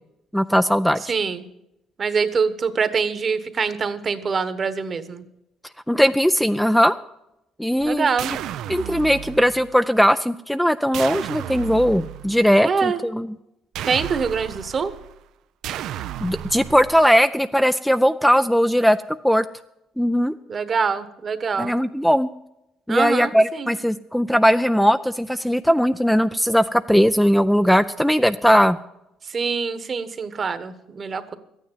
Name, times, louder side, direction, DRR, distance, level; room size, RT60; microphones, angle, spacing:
voice 1, 0.3-1.0 5.9-7.0 7.6-8.1 8.7-13.3 16.2-19.0 19.2-19.4 20.0-20.3 21.6-22.3 22.9-28.8, equal, ahead, 10 dB, 0.4 m, -19 dB
voice 2, 1.1-1.4 2.0-5.2 7.8-8.3 12.6-13.0 13.8-14.9 20.5-21.8 22.9-23.7 29.2-31.4, right 5 dB, 40° right, 12 dB, 1.2 m, -24 dB
sound 1, 7.8-9.8 10.9-12.5 13.7-15.2 15.6-17.2, right 11 dB, 75° right, 0.4 m, -33 dB
13.0 x 9.4 x 7.3 m, 0.88 s
cardioid pair, 95°, 0 cm